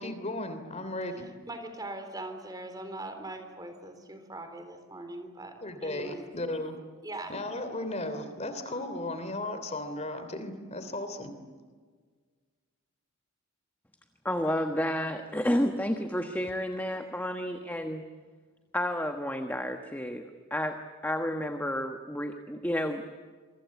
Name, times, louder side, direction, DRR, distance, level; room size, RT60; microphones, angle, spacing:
voice 1, 0.0-1.3 5.6-6.8 7.3-11.3, left 1 dB, 30° left, 9 dB, 3.1 m, -35 dB
voice 2, 1.2-5.5 5.8-6.2 7.0-7.3, right 2 dB, 20° right, 7 dB, 3.8 m, -41 dB
voice 3, 14.2-18.0 18.7-23.0, equal, 10° left, 5 dB, 1.2 m, -31 dB
27.0 x 24.0 x 8.4 m, 1.5 s
head